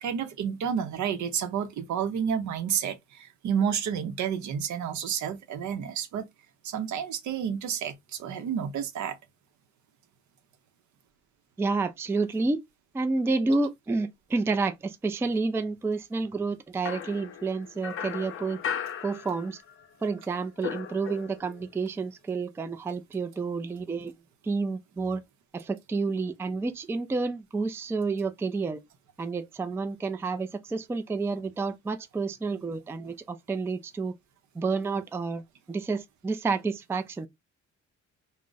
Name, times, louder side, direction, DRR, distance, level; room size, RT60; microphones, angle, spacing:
voice 1, 0.0-6.3 6.6-9.2, right 8 dB, 70° right, 0.7 m, -30 dB
voice 2, 11.6-12.6 12.9-18.6 19.0-19.6 20.0-24.1 24.4-25.2 25.5-28.8 29.2-34.2 34.5-35.4 35.7-37.3, right 4 dB, 10° right, 0.3 m, -29 dB
sound 1, 16.8-19.9 20.1-21.6, left 8 dB, 45° left, 0.5 m, -37 dB
2.4 x 2.0 x 3.8 m
cardioid pair, 90°, 30 cm